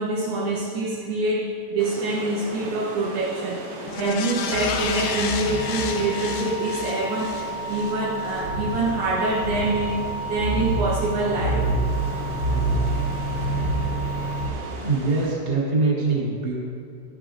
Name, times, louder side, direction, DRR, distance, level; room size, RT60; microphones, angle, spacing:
voice 1, 0.0-3.6 4.0-7.4 7.7-10.0 10.3-11.6, right 2 dB, 75° right, -2 dB, 2.4 m, -25 dB
sound 1, 1.8-15.3, right 2 dB, 60° right, 3.7 m, -38 dB
sound 2, 3.9-8.4 8.8-8.9, left 6 dB, 90° left, 2.3 m, -31 dB
sound 3, 4.5-14.5, right 2 dB, 60° left, 1.8 m, -28 dB
voice 2, 14.8-16.6, right 3 dB, 25° right, -6 dB, 2.0 m, -23 dB
14.0 x 13.0 x 2.5 m, 2.4 s
omnidirectional pair, 5.7 m